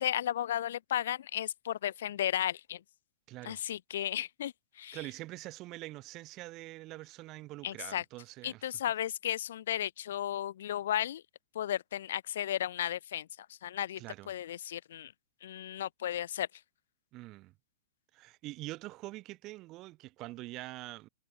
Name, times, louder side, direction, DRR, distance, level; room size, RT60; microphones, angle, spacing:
voice 1, 0.0-2.8 3.4-5.0 7.6-8.0 8.4-11.2 11.5-13.3 13.6-15.1 15.4-16.5, left 11 dB, 70° left, 0.9 m, -34 dB
voice 2, 3.3-3.6 4.9-8.7 14.0-14.3 17.1-17.5 18.1-21.1, right 19 dB, 40° right, 2.3 m, -44 dB
hypercardioid pair, 115°, 0 cm